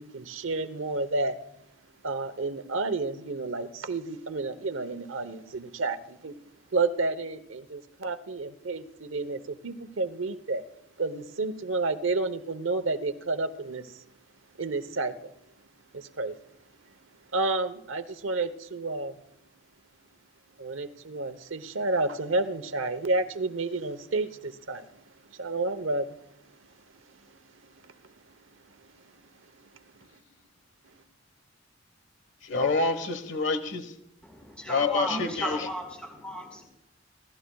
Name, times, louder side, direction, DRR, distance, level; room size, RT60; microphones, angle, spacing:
voice 1, 0.0-1.4 2.0-6.3 6.7-10.6 11.0-14.0 14.5-15.3 15.9-16.4 17.3-19.1 20.6-24.9 25.2-26.2 27.7-27.9 28.8-28.9, right 3 dB, 90° right, 0.9 m, -30 dB
voice 2, 32.4-33.9 34.7-35.7, left 3 dB, 70° left, 1.4 m, -27 dB
voice 3, 34.2-36.6, right 1 dB, 5° left, 4.5 m, -35 dB
25.5 x 16.5 x 2.3 m
head